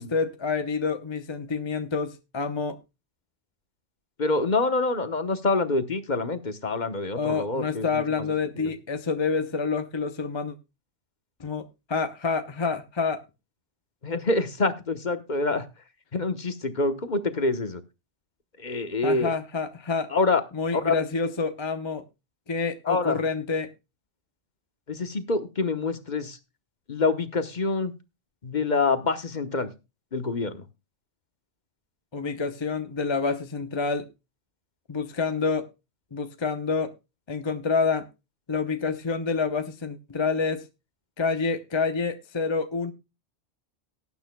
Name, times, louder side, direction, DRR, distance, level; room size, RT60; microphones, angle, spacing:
voice 1, 0.0-2.8 7.1-10.6 11.4-13.2 19.0-20.1 20.5-22.0 22.5-23.7 32.1-34.1 34.9-35.7 36.1-36.9 37.3-38.1 38.5-40.6 41.2-42.9, left 4 dB, 25° left, 0.8 m, -28 dB
voice 2, 4.2-8.0 8.6-8.7 14.0-15.7 16.1-17.8 18.6-19.3 20.1-20.4 20.7-21.0 22.8-23.2 24.9-26.4 26.9-27.9 28.4-29.7 30.1-30.6, left 3 dB, 45° left, 1.1 m, -26 dB
18.5 x 9.3 x 2.2 m
omnidirectional pair, 1.2 m